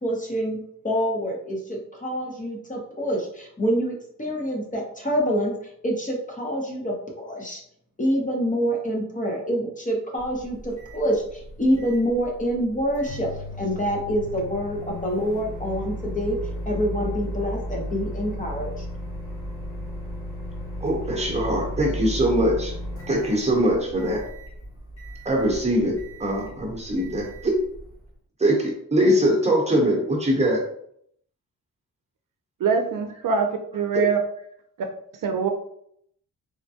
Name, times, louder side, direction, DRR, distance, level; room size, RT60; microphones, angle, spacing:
voice 1, 0.0-7.6 8.0-13.3 13.6-16.4 16.7-18.9, equal, 25° left, 0 dB, 0.7 m, -26 dB
Microwave oven, 10.2-28.1, equal, 60° left, 1.4 m, -35 dB
voice 2, 20.8-22.7 23.1-24.2 25.2-27.5 28.4-30.6 33.9-34.0, right 1 dB, 20° right, -1 dB, 0.9 m, -22 dB
voice 3, 32.6-34.2 35.2-35.5, right 6 dB, 70° right, 5 dB, 0.5 m, -23 dB
3.5 x 2.1 x 2.7 m, 0.68 s
wide cardioid pair, 105°, 34 cm